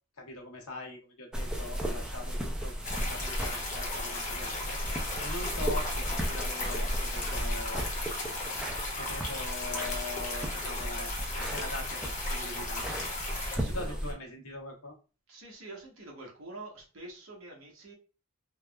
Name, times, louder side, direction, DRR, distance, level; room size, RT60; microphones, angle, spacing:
voice 1, 0.2-4.8 5.2-7.9 9.0-12.9 13.6-14.9, left 2 dB, 85° left, 2 dB, 0.8 m, -42 dB
sound 1, 1.3-14.1, equal, 5° right, 0.4 m, -35 dB
sound 2, 2.8-13.6, left 2 dB, 35° left, 0.7 m, -36 dB
voice 2, 13.5-14.2 15.3-17.9, right 2 dB, 65° right, 0 dB, 0.9 m, -46 dB
3.3 x 2.0 x 2.2 m, 0.34 s
head